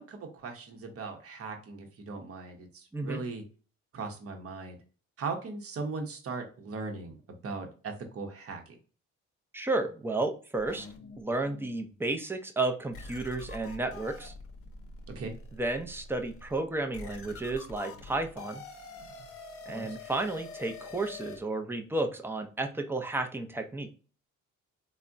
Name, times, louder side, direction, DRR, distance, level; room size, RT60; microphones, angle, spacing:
voice 1, 0.0-3.4 3.9-4.8 5.2-8.8 15.1-15.3 19.7-20.0, right 4 dB, 50° right, 4 dB, 0.8 m, -39 dB
voice 2, 9.5-10.9 11.2-14.3 15.6-18.6 19.7-23.9, right 2 dB, 10° right, 5 dB, 0.5 m, -32 dB
sound 1, 10.6-11.7 12.3-12.4 12.9-21.4, left 4 dB, 50° left, 0.7 m, -46 dB
3.4 x 2.1 x 2.5 m, 0.37 s
cardioid pair, 90°, 30 cm